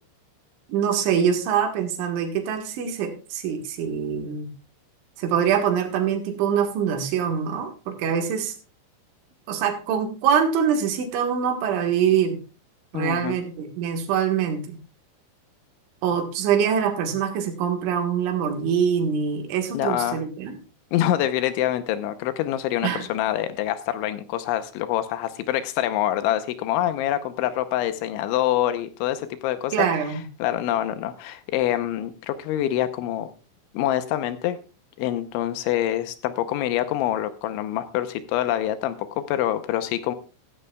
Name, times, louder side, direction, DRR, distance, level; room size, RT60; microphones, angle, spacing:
voice 1, 0.7-4.5 5.2-8.6 9.5-12.4 12.9-14.8 16.0-20.6 22.8-23.0 29.7-30.2, right 8 dB, 75° right, 5 dB, 3.9 m, -24 dB
voice 2, 12.9-13.4 19.7-20.2 20.9-30.1 30.4-33.3 33.7-34.6 35.0-40.2, left 12 dB, 80° left, 11 dB, 3.1 m, -25 dB
15.5 x 13.5 x 2.3 m, 0.34 s
omnidirectional pair, 5.5 m